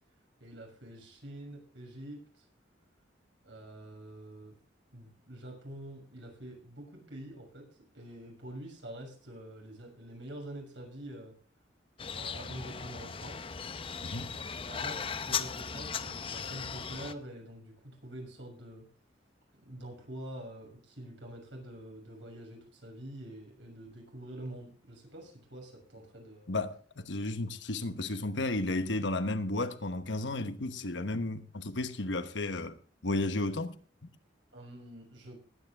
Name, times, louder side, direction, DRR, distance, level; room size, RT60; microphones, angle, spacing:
voice 1, 0.4-2.5 3.4-4.6 4.9-11.3 12.1-13.5 14.5-18.9 19.6-26.5 34.5-35.4, right 1 dB, 80° right, 6.3 m, -46 dB
sound 1, 12.0-17.1, left 6 dB, 30° left, 0.6 m, -37 dB
voice 2, 14.0-14.3 26.5-32.8 33.0-33.8, left 2 dB, 75° left, 1.1 m, -33 dB
20.5 x 9.4 x 3.5 m
head